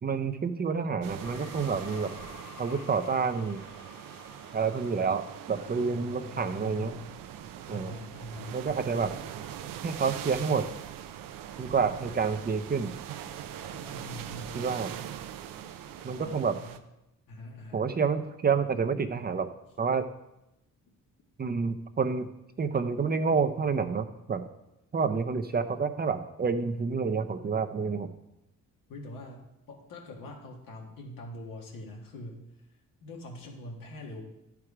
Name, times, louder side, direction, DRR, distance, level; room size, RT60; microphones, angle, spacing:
voice 1, 0.0-2.1 2.6-3.6 4.5-7.0 7.7-7.9 8.5-9.1 9.8-10.7 11.6-12.9 14.5-14.9 16.0-16.6 17.7-19.5 19.8-20.1 21.4-22.3 22.6-24.5 24.9-28.1, right 5 dB, 30° right, 9 dB, 0.6 m, -28 dB
sound 1, 1.0-16.8, right 10 dB, 85° right, 0.6 m, -42 dB
sound 2, 1.2-5.4, left 6 dB, 60° left, 1.0 m, -50 dB
voice 2, 5.5-7.2 7.7-8.6 13.7-14.8 16.1-16.8 17.3-17.9 28.9-32.4 33.0-34.2, left 1 dB, 85° left, 0 dB, 1.8 m, -44 dB
11.0 x 4.7 x 4.9 m, 0.89 s
cardioid pair, 90°, 33 cm